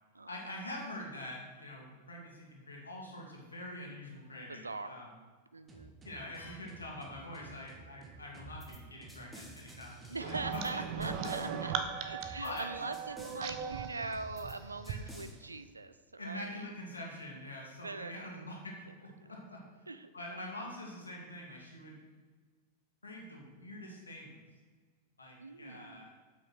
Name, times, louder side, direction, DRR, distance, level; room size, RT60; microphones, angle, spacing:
voice 1, 0.3-5.1 6.0-11.1 12.4-12.7 14.9-15.0 16.2-19.6 20.1-22.0 23.0-24.4 25.2-26.1, left 1 dB, 75° left, -1 dB, 2.2 m, -45 dB
voice 2, 4.5-5.0 5.5-5.9 10.1-16.7 17.8-18.5 19.2-19.3 19.9-20.5 25.4-26.1, right 3 dB, 80° right, 11 dB, 0.4 m, -42 dB
sound 1, 5.7-11.0, right 3 dB, 20° right, 1.4 m, -55 dB
sound 2, 8.4-8.8 9.1-10.7 11.0-11.5 12.2-12.6 12.9-13.4 14.1-14.6 14.8-15.3, equal, ahead, 1.5 m, -51 dB
sound 3, 10.2-15.0, right 7 dB, 45° right, 0.8 m, -38 dB
7.8 x 6.0 x 6.2 m, 1.5 s
figure-of-eight pair, 90°, 0 cm